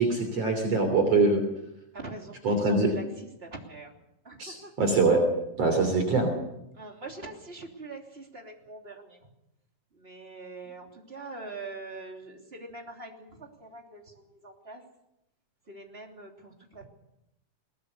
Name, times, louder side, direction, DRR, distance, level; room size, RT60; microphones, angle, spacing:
voice 1, 0.0-1.4 2.4-2.9 4.4-5.2 5.6-6.3, right 3 dB, 50° right, 5 dB, 4.0 m, -23 dB
voice 2, 1.9-3.9 4.2-4.7 5.7-5.8 6.7-9.2 9.9-14.8 15.7-16.9, right 3 dB, 20° right, 1 dB, 3.0 m, -43 dB
21.5 x 20.0 x 6.8 m, 0.85 s
omnidirectional pair, 3.8 m